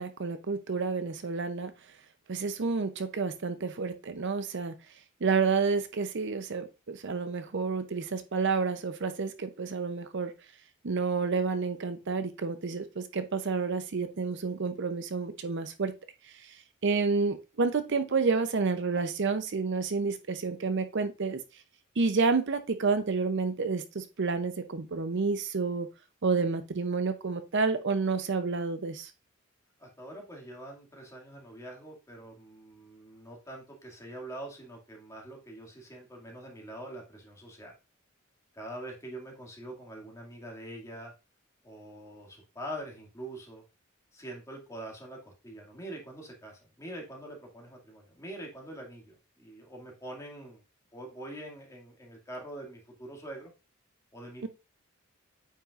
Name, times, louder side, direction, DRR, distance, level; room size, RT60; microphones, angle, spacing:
voice 1, 0.0-1.7 2.3-4.7 5.2-10.3 10.8-15.9 16.2-21.4 22.0-25.9 26.2-29.1 54.4-54.5, right 4 dB, 60° right, 10 dB, 0.6 m, -29 dB
voice 2, 29.8-37.7 38.5-41.1 41.6-43.6 44.1-50.6 50.9-53.5 54.1-54.5, right 1 dB, 15° left, -1 dB, 2.1 m, -44 dB
8.9 x 5.5 x 2.4 m, 0.28 s
head